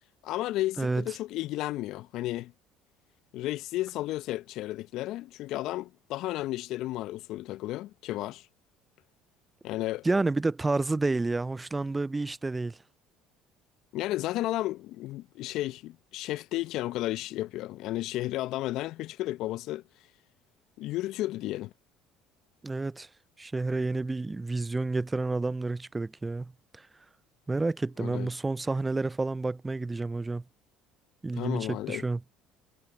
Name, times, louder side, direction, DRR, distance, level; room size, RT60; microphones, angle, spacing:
voice 1, 0.2-2.5 3.3-8.5 9.6-10.1 13.9-19.8 20.8-21.7 28.0-28.3 31.3-32.0, left 16 dB, 60° left, 0.8 m, -33 dB
voice 2, 10.0-12.8 22.6-23.1 23.4-26.9 27.5-30.4 31.2-32.2, right 3 dB, 20° right, 0.5 m, -30 dB
hypercardioid pair, 65°, 0 cm